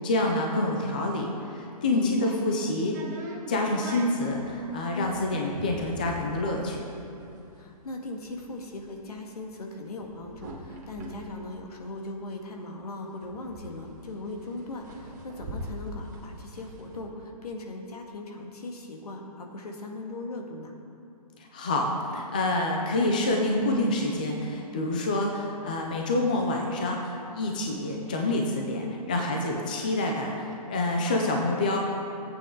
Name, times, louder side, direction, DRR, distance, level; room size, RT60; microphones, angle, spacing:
voice 1, 0.0-3.0 3.5-6.9 21.4-31.8, left 2 dB, 15° left, 0 dB, 0.4 m, -27 dB
voice 2, 1.9-2.4 4.9-5.2 7.5-20.7 31.0-31.3, left 2 dB, 70° left, 1 dB, 1.9 m, -38 dB
sound 1, 2.9-12.4 12.8-12.9 13.0-17.0, right 1 dB, 30° right, 1.5 m, -42 dB
15.5 x 8.5 x 3.8 m, 2.8 s
hypercardioid pair, 175°, 20 cm